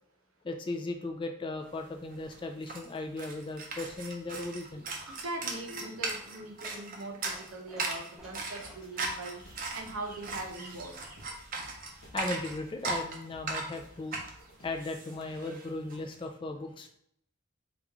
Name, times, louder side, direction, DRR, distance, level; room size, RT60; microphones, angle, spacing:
voice 1, 0.4-4.8 12.1-14.2 14.6-16.9, left 2 dB, 25° left, 4 dB, 0.3 m, -37 dB
sound 1, 1.8-1.9 2.1-16.0, right 3 dB, 40° right, 0.6 m, -38 dB
Coin (dropping), 3.9-11.2, equal, ahead, 0.7 m, -56 dB
voice 2, 5.1-9.4 9.7-11.0, right 2 dB, 90° right, 2 dB, 0.7 m, -41 dB
sound 2, 8.2-15.0, left 1 dB, 75° left, 0.8 m, -57 dB
3.0 x 2.4 x 3.5 m, 0.69 s
head